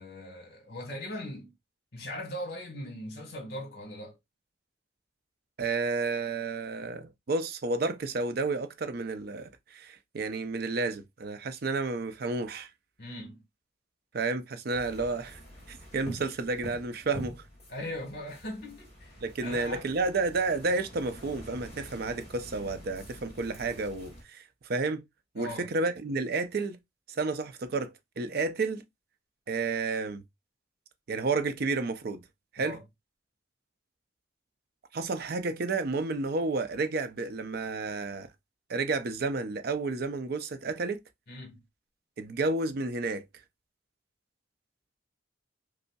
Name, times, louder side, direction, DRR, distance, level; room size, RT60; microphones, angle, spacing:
voice 1, 0.0-1.5 1.9-4.2 13.0-13.4 17.7-19.1 19.4-19.9 25.4-25.7 32.6-32.8 41.3-41.6, left 1 dB, 60° left, 1.4 m, -39 dB
voice 2, 5.6-12.7 14.1-15.4 15.7-17.4 19.2-24.4 24.7-25.0 25.3-26.8 27.1-28.8 29.5-30.2 31.1-32.2 32.5-32.8 34.9-38.3 38.7-41.0 42.2-43.2, right 3 dB, 55° right, 0.5 m, -31 dB
sound 1, 14.7-24.2, equal, 35° left, 2.1 m, -47 dB
5.2 x 2.0 x 2.2 m
head